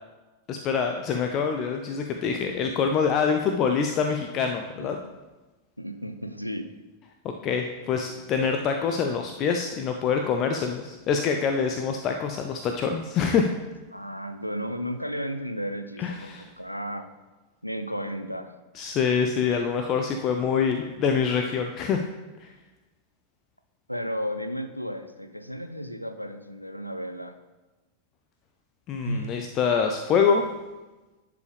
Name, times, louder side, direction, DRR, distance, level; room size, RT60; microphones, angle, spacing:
voice 1, 0.5-5.0 7.4-13.5 16.0-16.5 18.8-22.0 22.4-22.5 28.9-30.4, left 6 dB, 35° left, 5 dB, 0.5 m, -25 dB
voice 2, 5.8-6.7 13.9-17.1 17.6-18.5 23.9-27.4 29.0-29.4, equal, 90° left, 9 dB, 0.5 m, -33 dB
10.5 x 4.8 x 3.4 m, 1.2 s
figure-of-eight pair, 90°, 0 cm